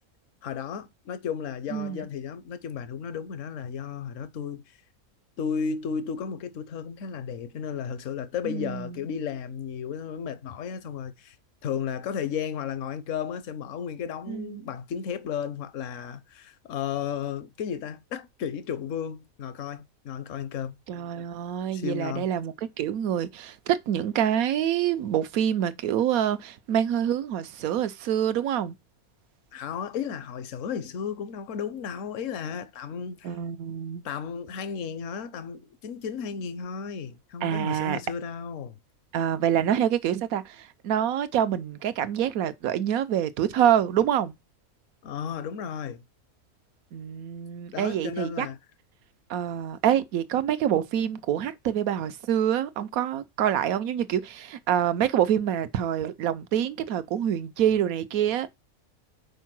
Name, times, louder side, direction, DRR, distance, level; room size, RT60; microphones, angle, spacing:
voice 1, 0.4-4.6 5.4-11.4 11.6-20.8 21.7-22.3 29.5-33.3 34.0-38.8 45.0-46.0 47.7-48.6, left 7 dB, 65° left, 1.1 m, -34 dB
voice 2, 1.7-2.0 8.4-9.0 14.3-14.7 20.9-28.7 33.2-34.0 37.4-38.0 39.1-44.3 46.9-48.5 49.3-58.5, right 10 dB, 85° right, 1.1 m, -26 dB
5.5 x 4.6 x 5.9 m
omnidirectional pair, 1.5 m